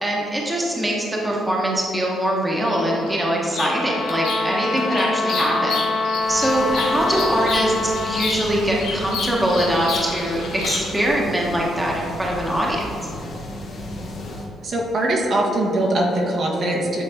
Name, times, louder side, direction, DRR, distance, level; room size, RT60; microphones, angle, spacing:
voice 1, 0.0-5.8 6.3-12.8, right 1 dB, 15° right, -3 dB, 1.2 m, -22 dB
Bird vocalization bird call bird song, 2.6-11.1, left 4 dB, 90° left, 1.1 m, -31 dB
sound 1, 3.6-8.3, left 3 dB, 10° left, 1.0 m, -25 dB
sound 2, 6.2-14.5, left 1 dB, 60° left, 1.4 m, -35 dB
voice 2, 14.6-17.0, right 1 dB, 55° right, -3 dB, 1.3 m, -21 dB
8.8 x 3.8 x 3.7 m, 2.7 s
cardioid pair, 90°, 0 cm